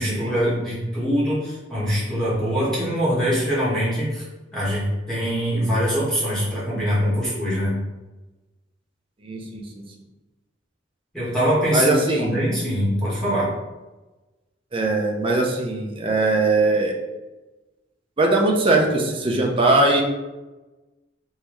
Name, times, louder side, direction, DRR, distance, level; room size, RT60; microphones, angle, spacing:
voice 1, 0.0-4.2 4.5-7.7 11.1-13.5, equal, 5° left, -9 dB, 1.2 m, -23 dB
voice 2, 9.2-9.6 11.7-12.4 14.7-16.9 18.2-20.0, right 2 dB, 30° right, 0 dB, 0.4 m, -20 dB
3.4 x 2.7 x 3.0 m, 1.1 s
head